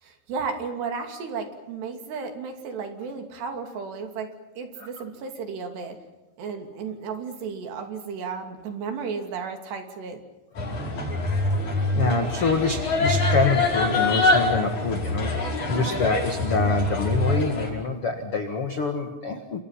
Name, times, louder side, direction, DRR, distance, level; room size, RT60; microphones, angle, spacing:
voice 1, 0.0-4.3 4.6-6.0 6.4-10.2, right 5 dB, 65° right, 5 dB, 4.6 m, -33 dB
sound 1, 10.6-17.7, left 2 dB, 40° left, 6.3 m, -24 dB
voice 2, 11.9-19.6, left 4 dB, 70° left, 6 dB, 1.3 m, -26 dB
29.5 x 26.5 x 5.8 m, 1.1 s
omnidirectional pair, 5.5 m